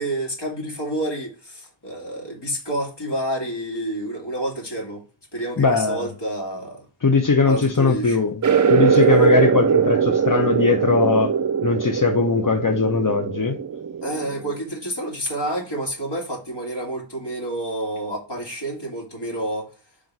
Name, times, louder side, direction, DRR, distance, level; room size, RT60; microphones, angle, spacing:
voice 1, 0.0-5.0 5.3-6.8 7.4-8.2 14.0-19.7, right 1 dB, 60° left, 2.8 m, -29 dB
voice 2, 5.6-6.1 7.0-8.4 8.7-11.3 11.6-13.6, left 4 dB, 40° left, 0.8 m, -20 dB
sound 1, 8.4-14.6, right 7 dB, 40° right, 0.6 m, -21 dB
5.1 x 4.1 x 4.6 m
wide cardioid pair, 45°, 48 cm